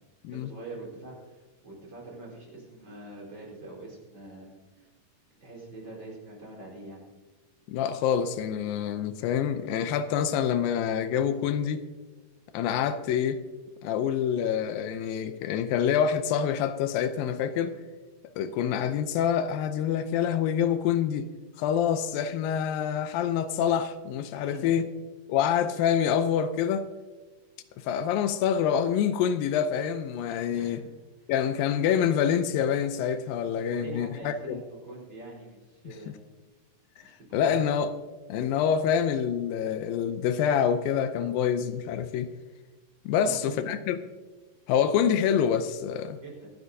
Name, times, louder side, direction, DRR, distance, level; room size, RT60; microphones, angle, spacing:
voice 1, 0.3-4.9 5.4-7.0 24.3-24.7 30.5-30.9 31.2-31.3 33.4-36.1 37.0-37.6 43.1-43.7 46.2-46.5, right 2 dB, 30° right, 4.9 m, -44 dB
voice 2, 7.7-11.8 12.5-13.4 13.8-17.7 18.4-21.3 21.6-24.9 25.3-26.9 27.8-30.8 31.3-34.6 37.3-37.9 38.3-42.3 43.1-44.0 44.7-46.2, left 8 dB, 85° left, 2.4 m, -26 dB
25.0 x 9.8 x 2.7 m
omnidirectional pair, 4.0 m